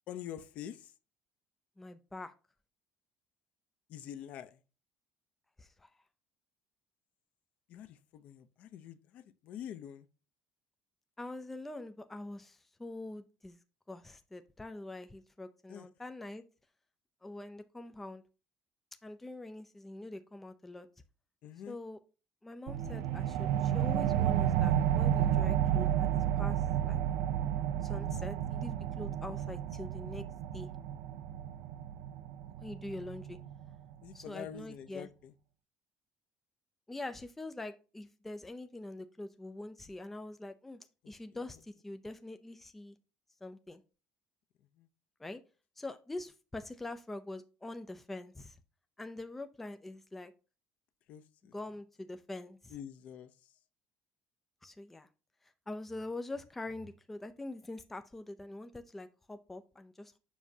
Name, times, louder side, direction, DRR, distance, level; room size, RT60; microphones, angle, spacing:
voice 1, 0.1-0.8 3.9-4.5 7.7-10.1 15.7-15.9 21.4-21.8 34.0-35.3 51.1-51.5 52.7-53.3, left 10 dB, 50° left, 0.6 m, -46 dB
voice 2, 1.8-2.3 5.6-5.9 11.2-13.6 13.9-16.4 17.2-18.2 19.0-20.9 21.7-22.0 22.4-27.0 27.8-30.3 30.5-30.7 32.6-33.4 34.1-35.1 36.9-40.8 41.1-43.0 43.4-43.8 45.2-45.4 45.8-48.6 49.0-50.3 51.5-52.8 54.6-55.1 55.4-60.1, left 2 dB, 5° left, 0.4 m, -44 dB
sound 1, 22.7-33.7, right 10 dB, 80° right, 0.5 m, -31 dB
7.2 x 6.0 x 2.7 m
cardioid pair, 170°, 3 cm